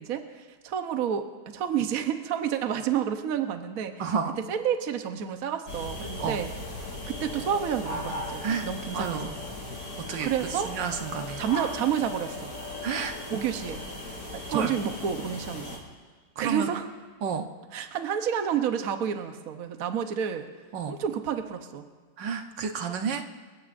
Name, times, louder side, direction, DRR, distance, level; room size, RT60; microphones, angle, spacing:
voice 1, 0.0-4.1 4.5-6.5 7.1-9.4 10.2-10.7 11.4-12.5 13.3-13.8 14.3-15.8 16.4-16.9 17.7-20.5 20.9-21.9, right 8 dB, 55° right, 7 dB, 1.3 m, -30 dB
voice 2, 4.0-4.4 6.2-6.4 8.4-8.7 8.9-9.3 10.1-10.3 10.6-11.4 12.8-13.2 14.5-14.7 16.4-16.7 17.2-17.5 20.7-21.0 22.2-23.2, right 6 dB, 80° right, 5 dB, 1.7 m, -30 dB
sound 1, 5.7-15.8, left 2 dB, 55° left, 5.7 m, -38 dB
sound 2, 9.9-14.9, left 3 dB, 30° left, 2.0 m, -50 dB
27.5 x 16.0 x 2.6 m, 1.5 s
omnidirectional pair, 1.9 m